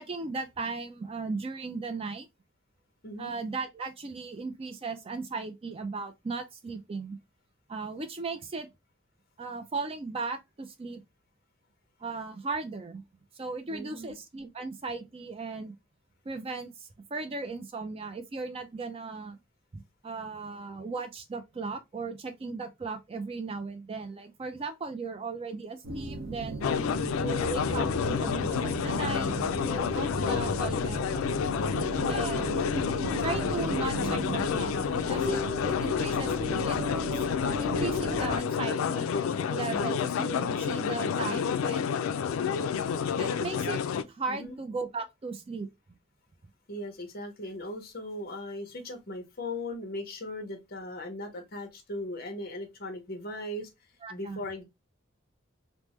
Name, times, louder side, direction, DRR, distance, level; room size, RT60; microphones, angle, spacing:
voice 1, 0.0-2.3 3.2-7.2 7.7-8.7 9.4-11.0 12.0-13.0 13.4-15.7 16.3-19.4 19.7-26.7 27.2-29.3 29.6-31.0 32.0-36.3 36.6-36.8 37.6-39.1 39.5-41.9 43.2-43.8 44.1-45.7 54.0-54.4, right 4 dB, 30° right, 0.4 m, -37 dB
voice 2, 13.7-14.1 26.7-27.1 44.3-44.5 46.7-53.7 54.1-54.6, left 1 dB, 50° left, 0.9 m, -38 dB
sound 1, 25.8-38.4, right 1 dB, 75° right, 0.8 m, -35 dB
sound 2, 26.6-44.0, left 7 dB, 85° left, 0.3 m, -29 dB
3.4 x 2.1 x 3.0 m
head